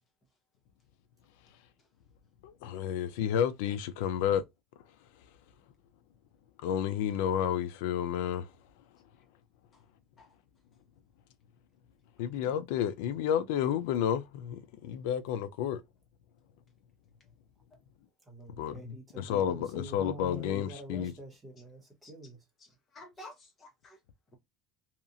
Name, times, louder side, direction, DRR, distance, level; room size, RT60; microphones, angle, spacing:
voice 1, 2.4-4.4 6.6-8.5 12.2-15.8 18.6-18.8 19.2-21.1, left 9 dB, 85° left, 0.3 m, -31 dB
voice 2, 18.3-22.4, right 1 dB, 10° right, 1.0 m, -47 dB
voice 3, 22.6-24.0, left 1 dB, 25° left, 0.8 m, -52 dB
2.8 x 2.4 x 2.4 m
cardioid pair, 160°, 0 cm